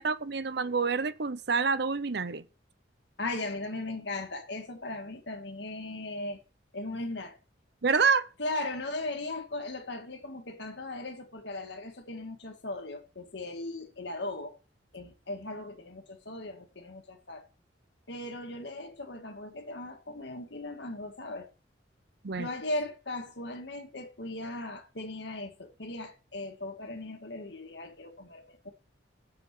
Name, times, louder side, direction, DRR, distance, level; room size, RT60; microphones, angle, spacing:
voice 1, 0.0-2.5 7.8-8.3 22.2-22.5, right 5 dB, 60° right, 0.8 m, -27 dB
voice 2, 3.2-6.4 6.7-7.4 8.4-14.6 14.9-17.5 18.1-21.5 22.3-28.7, left 2 dB, 65° left, 2.0 m, -38 dB
9.7 x 7.7 x 7.5 m
head